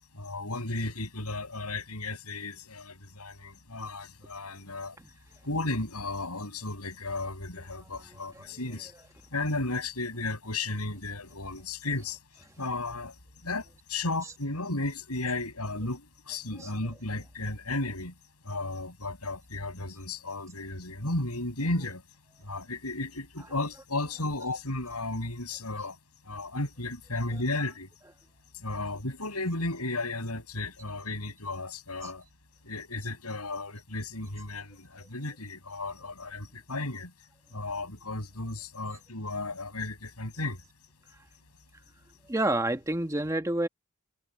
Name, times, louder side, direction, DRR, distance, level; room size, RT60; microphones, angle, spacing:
voice 1, 0.1-5.0 5.4-8.9 9.3-12.2 12.6-18.1 18.4-22.0 22.4-26.0 26.2-27.9 28.5-32.2 32.6-37.1 37.5-40.6, left 2 dB, 85° left, 6.9 m, -34 dB
voice 2, 7.6-9.1 12.0-12.1 14.2-14.3 16.5-16.7 21.8-21.9 23.4-24.5 27.3-27.7 28.0-28.1 32.0-32.1 42.3-43.7, right 1 dB, 15° right, 1.4 m, -33 dB
head